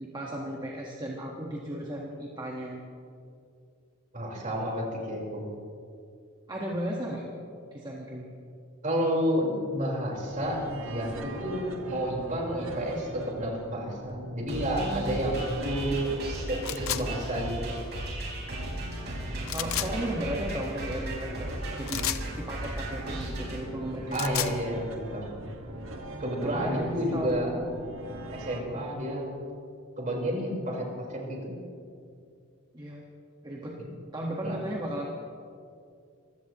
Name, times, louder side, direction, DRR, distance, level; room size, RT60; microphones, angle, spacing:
voice 1, 0.0-2.8 6.5-7.4 7.7-8.3 14.7-15.5 19.1-22.0 22.3-24.4 26.4-27.4 32.7-33.0 33.4-33.8 34.1-35.1, right 1 dB, 20° right, -2 dB, 1.4 m, -35 dB
voice 2, 4.1-5.4 8.8-16.2 16.5-17.8 24.1-25.2 26.2-27.6 28.3-29.3 30.0-31.5 34.4-34.6, equal, 40° right, -2 dB, 4.4 m, -30 dB
sound 1, 10.1-28.6, right 1 dB, 70° right, 1.5 m, -42 dB
sound 2, 14.5-23.6, right 1 dB, 55° right, 4.4 m, -36 dB
sound 3, 16.6-17.0 19.5-19.9 21.9-22.2 23.9-24.6, left 12 dB, 85° left, 0.7 m, -31 dB
25.5 x 16.0 x 3.0 m, 2.4 s
head